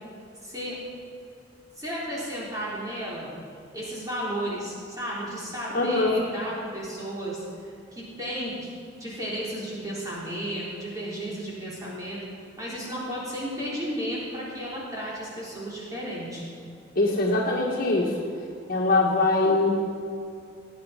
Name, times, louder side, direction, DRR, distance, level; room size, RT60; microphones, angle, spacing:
voice 1, 0.4-0.8 1.8-3.3 3.7-7.4 7.7-8.7 9.0-12.2 12.6-16.5, equal, 20° right, -7 dB, 3.7 m, -33 dB
voice 2, 5.7-6.2 17.0-18.1 18.7-19.7, left 2 dB, 45° left, -2 dB, 1.9 m, -22 dB
18.0 x 9.7 x 5.2 m, 2.4 s
head